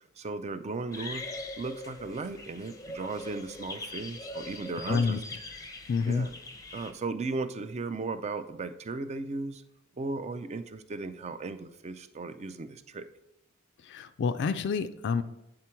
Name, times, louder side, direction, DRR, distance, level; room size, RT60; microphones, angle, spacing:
voice 1, 0.2-1.2 1.6-5.2 6.1-6.3 6.7-9.6 10.0-13.1, right 3 dB, 30° right, 11 dB, 0.4 m, -36 dB
sound 1, 0.9-6.9, left 2 dB, 15° left, 0.6 m, -42 dB
voice 2, 4.9-5.2 5.9-6.3 13.9-15.2, left 5 dB, 55° left, 10 dB, 0.3 m, -28 dB
8.7 x 3.8 x 4.4 m, 0.90 s
head